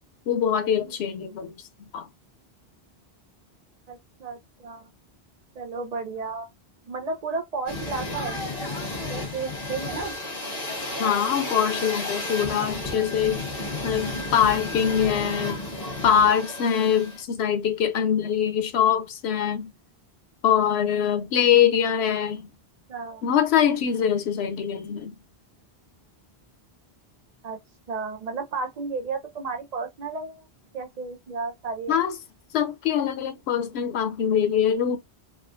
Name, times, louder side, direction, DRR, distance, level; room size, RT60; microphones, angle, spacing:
voice 1, 0.3-1.5 1.9-2.1 11.0-13.5 13.8-15.6 16.0-19.7 20.4-22.5 23.2-25.1 31.9-32.1 32.5-35.0, left 8 dB, 90° left, 0.9 m, -23 dB
voice 2, 3.9-4.9 5.5-6.5 6.8-10.2 10.5-10.6 22.9-23.3 27.4-27.6 27.9-30.5 30.7-32.0, right 4 dB, 50° right, 0.6 m, -33 dB
sound 1, 7.7-17.2, left 2 dB, 40° left, 1.1 m, -32 dB
3.6 x 2.3 x 2.4 m
omnidirectional pair, 1.0 m